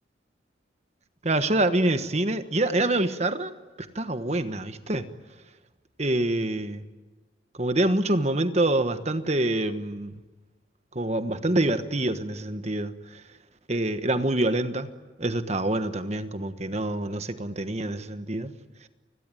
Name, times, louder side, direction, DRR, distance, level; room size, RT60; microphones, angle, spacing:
voice 1, 1.2-3.5 3.9-5.1 6.0-6.8 7.6-10.1 10.9-13.2 13.7-14.9 15.2-18.5, right 1 dB, 35° right, 10 dB, 1.3 m, -26 dB
29.5 x 21.5 x 9.1 m, 1.2 s
head